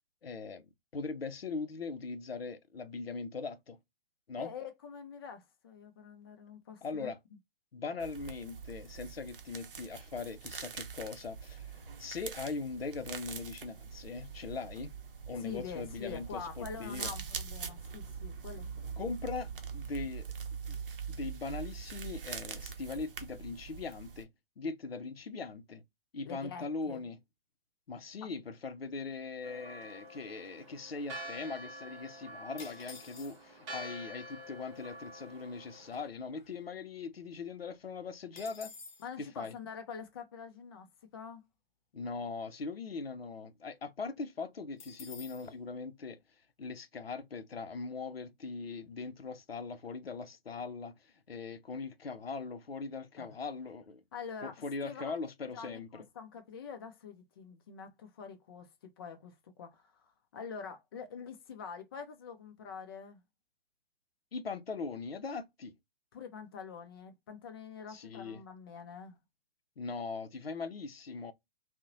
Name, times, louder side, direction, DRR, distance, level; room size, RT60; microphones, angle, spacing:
voice 1, 0.2-0.6 0.9-3.8 4.3-4.5 6.8-7.2 7.7-14.9 15.3-17.1 19.0-20.3 20.7-20.8 21.1-24.3 24.6-25.8 26.1-27.2 27.9-38.7 39.4-39.6 41.9-46.2 46.6-51.0 51.3-54.0 54.4-56.0 64.3-65.7 67.9-68.4 69.8-71.3, left 4 dB, 90° left, 0.5 m, -40 dB
voice 2, 4.4-7.1 15.4-18.9 26.2-27.1 39.0-40.9 41.1-41.4 53.2-53.3 54.1-55.2 55.5-63.2 66.1-69.2, left 6 dB, 25° left, 0.3 m, -45 dB
sound 1, 8.0-24.2, right 6 dB, 65° right, 0.6 m, -43 dB
Church bell, 29.4-36.1, equal, 30° right, 0.8 m, -47 dB
sound 2, 32.6-33.7 34.5-34.6 34.7-35.1 35.5-37.0 37.3-37.4 37.7-39.1 44.8-45.5, left 5 dB, 55° left, 0.7 m, -51 dB
2.7 x 2.0 x 2.4 m
figure-of-eight pair, 125°, 29 cm